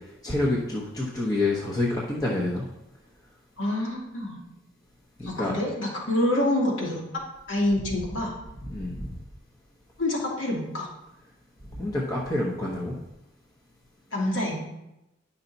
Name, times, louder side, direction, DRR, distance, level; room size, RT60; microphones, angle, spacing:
voice 1, 0.2-2.6 5.2-5.5 8.7-9.2 11.7-13.0, left 2 dB, 20° left, -4 dB, 1.0 m, -27 dB
voice 2, 3.6-4.4 5.2-7.0 7.5-8.3 10.0-10.9 14.1-14.6, left 1 dB, 70° left, -3 dB, 2.3 m, -27 dB
10.0 x 5.7 x 4.0 m, 0.92 s
head